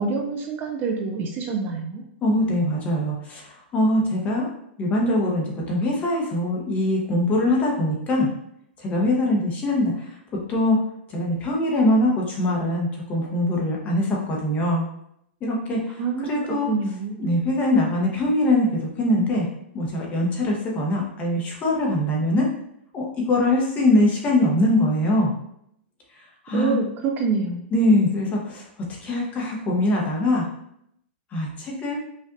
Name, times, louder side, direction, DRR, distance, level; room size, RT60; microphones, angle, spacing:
voice 1, 0.0-2.0 16.0-16.4 16.7-17.3 26.5-27.7, right 4 dB, 30° right, 2 dB, 0.5 m, -26 dB
voice 2, 2.2-4.5 4.8-8.3 8.8-10.2 10.5-10.8 11.1-14.9 15.4-16.7 17.2-19.5 19.7-22.4 22.9-25.3 26.1-26.8 27.7-28.7 29.0-30.4 31.3-32.0, left 1 dB, 25° left, -2 dB, 1.0 m, -22 dB
5.1 x 2.5 x 2.6 m, 0.74 s
hypercardioid pair, 135°, 6 cm